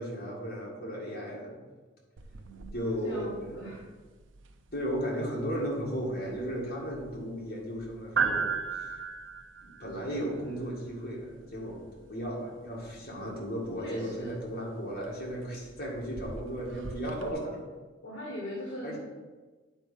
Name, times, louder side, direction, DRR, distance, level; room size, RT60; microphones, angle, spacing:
voice 1, 0.0-1.6 2.7-3.7 4.7-8.9 9.6-11.8 12.1-17.6 18.8-19.0, equal, 50° left, -4 dB, 2.1 m, -35 dB
sound 1, 2.2-17.3, right 5 dB, 80° right, 0.5 m, -39 dB
voice 2, 2.4-3.8 13.8-14.3 18.0-19.0, equal, 65° left, -3 dB, 1.4 m, -40 dB
9.1 x 4.0 x 5.5 m, 1.3 s
head